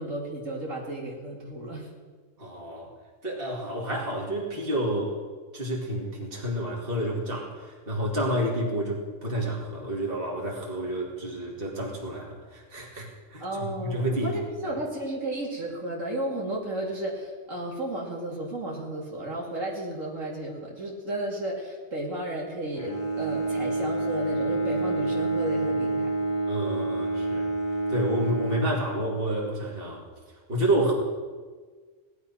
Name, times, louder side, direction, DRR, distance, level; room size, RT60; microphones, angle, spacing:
voice 1, 0.0-1.9 13.4-26.1, right 1 dB, 85° right, -3 dB, 3.2 m, -33 dB
voice 2, 2.4-2.9 3.2-5.2 5.5-14.4 14.6-14.7 26.5-27.5 27.9-30.0 30.5-30.9, right 1 dB, 45° right, -2 dB, 2.7 m, -29 dB
Bowed string instrument, 22.7-29.4, right 2 dB, 40° left, 1.5 m, -28 dB
17.5 x 11.5 x 5.7 m, 1.5 s
omnidirectional pair, 1.3 m